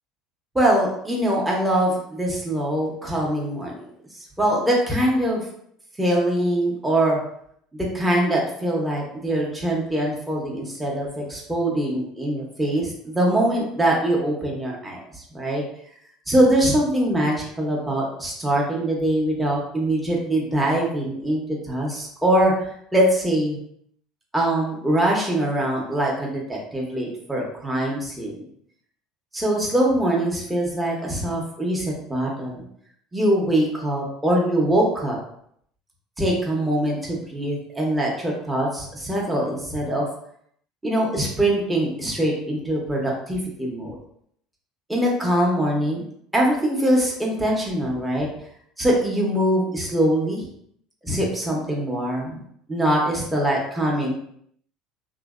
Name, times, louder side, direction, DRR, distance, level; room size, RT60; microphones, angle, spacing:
voice 1, 0.5-3.8 4.4-5.4 6.0-7.2 7.7-15.6 16.3-21.4 21.7-23.6 24.3-28.5 29.3-32.6 33.1-35.2 36.2-40.0 40.8-44.0 44.9-46.0 46.3-48.3 48.8-50.4 51.0-52.4 52.7-54.1, right 1 dB, 10° right, -3 dB, 0.7 m, -23 dB
2.6 x 2.0 x 2.3 m, 0.68 s
supercardioid pair, 90°, 0 cm